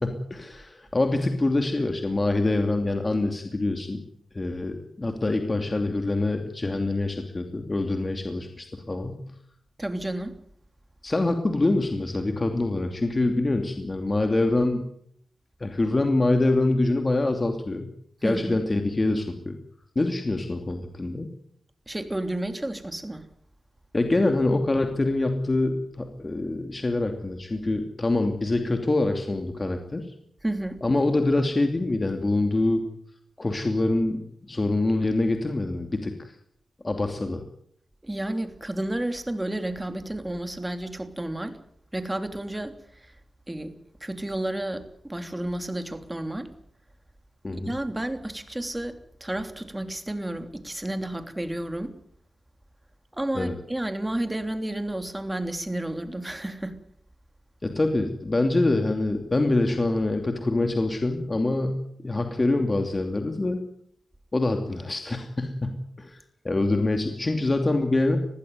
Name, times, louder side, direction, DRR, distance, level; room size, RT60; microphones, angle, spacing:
voice 1, 0.0-4.0 4.3-9.2 11.0-14.8 15.6-17.9 18.2-19.6 19.9-21.3 23.9-30.1 30.8-32.8 33.4-36.4 36.8-37.4 47.4-47.7 53.3-53.6 57.6-63.6 64.3-66.2 66.4-68.2, left 2 dB, 30° left, 5 dB, 2.8 m, -25 dB
voice 2, 9.8-10.3 18.2-18.6 21.9-23.2 30.4-30.8 38.0-41.6 41.9-43.1 43.5-43.7 44.0-46.5 47.5-51.9 53.1-56.8, right 1 dB, 15° right, 8 dB, 3.3 m, -31 dB
21.0 x 15.0 x 9.5 m, 0.68 s
cardioid pair, 65°, 0 cm